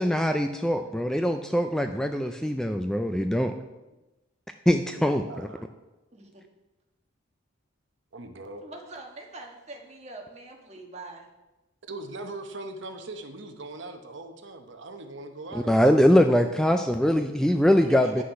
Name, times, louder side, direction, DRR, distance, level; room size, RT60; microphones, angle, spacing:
voice 1, 0.0-3.5 4.7-5.2 15.5-18.2, equal, 5° left, 6 dB, 0.3 m, -22 dB
voice 2, 5.0-5.6 8.1-8.6 11.9-16.3, right 2 dB, 60° right, 6 dB, 0.8 m, -40 dB
voice 3, 6.1-6.4 8.6-11.3 17.8-18.2, right 2 dB, 30° right, 1 dB, 1.5 m, -43 dB
9.5 x 6.4 x 5.7 m, 1.0 s
head